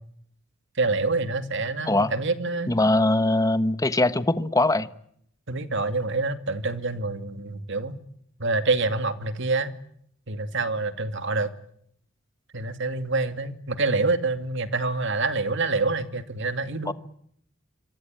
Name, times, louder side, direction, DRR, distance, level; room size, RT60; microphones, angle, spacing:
voice 1, 0.8-2.7 5.5-8.0 8.4-9.7 10.3-11.5 12.5-16.9, right 3 dB, 65° right, 9 dB, 2.4 m, -26 dB
voice 2, 2.7-4.9 16.9-17.0, left 2 dB, 15° left, 12 dB, 1.2 m, -21 dB
27.0 x 24.5 x 9.0 m, 0.69 s
head